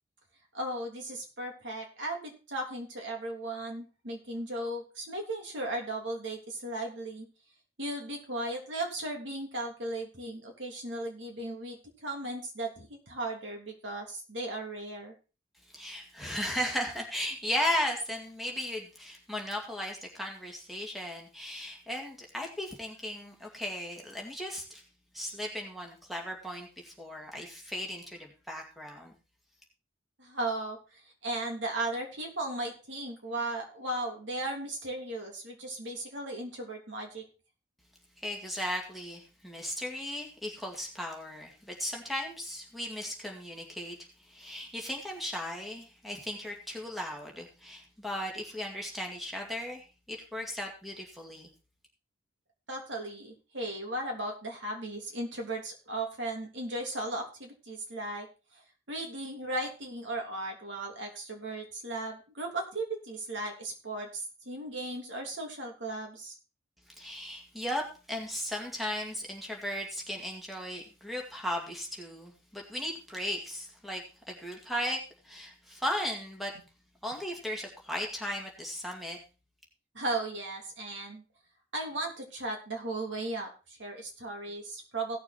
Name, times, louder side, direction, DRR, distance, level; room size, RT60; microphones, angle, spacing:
voice 1, 0.5-7.3 7.8-15.1 30.2-37.2 52.7-58.3 58.5-58.6 58.9-66.3 79.9-81.2 81.7-85.2, right 2 dB, 75° right, 1 dB, 3.2 m, -36 dB
voice 2, 15.7-24.8 25.1-29.1 38.2-51.5 67.0-75.0 75.2-76.5 77.0-79.2, equal, ahead, 0 dB, 2.1 m, -36 dB
16.5 x 6.7 x 4.3 m, 0.33 s
head